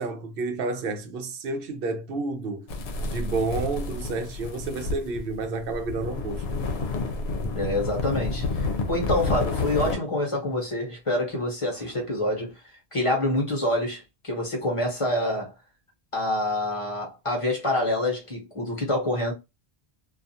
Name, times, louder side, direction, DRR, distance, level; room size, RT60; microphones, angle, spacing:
voice 1, 0.0-6.4, right 3 dB, 65° right, 0.8 m, -30 dB
sound 1, 2.7-10.0, left 3 dB, 80° left, 0.8 m, -30 dB
voice 2, 7.5-12.5 12.9-15.5 16.1-19.3, left 1 dB, 30° left, 0.9 m, -27 dB
2.3 x 2.3 x 2.7 m
omnidirectional pair, 1.1 m